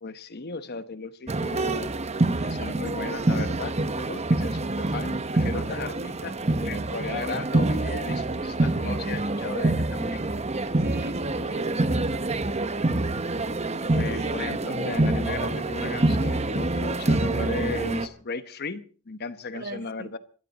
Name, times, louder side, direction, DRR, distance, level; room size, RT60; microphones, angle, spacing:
voice 1, 0.0-1.9 2.4-10.2 13.9-20.2, left 4 dB, 45° left, 1.0 m, -36 dB
sound 1, 1.3-18.1, right 2 dB, 30° right, 1.0 m, -26 dB
voice 2, 10.8-12.4 14.1-14.3 19.5-20.1, right 3 dB, 45° right, 1.2 m, -38 dB
25.5 x 13.5 x 4.1 m
head